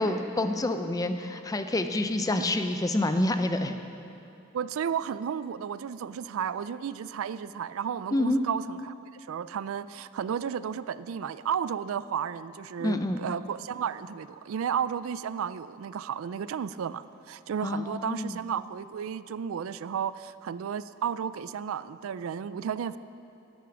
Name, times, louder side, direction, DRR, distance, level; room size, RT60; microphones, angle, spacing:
voice 1, 0.0-3.8 8.1-8.4 12.8-13.2 17.6-18.4, left 1 dB, 15° left, 8 dB, 0.5 m, -27 dB
voice 2, 4.5-8.9 9.3-23.0, right 8 dB, 70° right, 15 dB, 0.3 m, -33 dB
13.5 x 9.2 x 6.1 m, 2.8 s
head